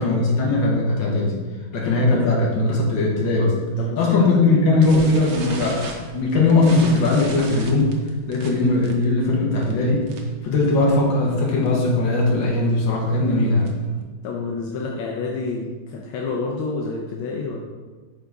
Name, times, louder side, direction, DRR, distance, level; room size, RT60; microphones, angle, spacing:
voice 1, 0.0-1.3 1.7-3.5 4.0-5.8 6.1-7.9 8.3-10.0 10.4-13.7, left 2 dB, 70° left, -3 dB, 1.9 m, -19 dB
voice 2, 3.8-5.1 14.2-17.6, left 3 dB, 85° left, -1 dB, 1.5 m, -29 dB
sound 1, 4.8-10.4 10.7-11.0 11.3-11.4 11.7-11.9 12.4-14.0, right 2 dB, 55° right, 0.8 m, -37 dB
5.9 x 3.9 x 4.7 m, 1.4 s
omnidirectional pair, 2.1 m